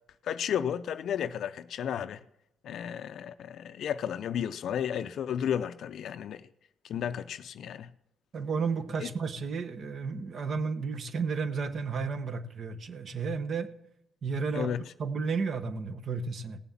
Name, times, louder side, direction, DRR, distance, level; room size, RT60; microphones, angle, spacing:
voice 1, 0.2-2.2 2.6-6.4 6.8-7.9 9.0-9.1 14.5-14.8, left 9 dB, 70° left, 0.4 m, -33 dB
voice 2, 8.3-13.7 14.2-14.7 15.0-16.6, right 5 dB, 55° right, 1.0 m, -32 dB
16.5 x 7.0 x 7.2 m
supercardioid pair, 60°, 0 cm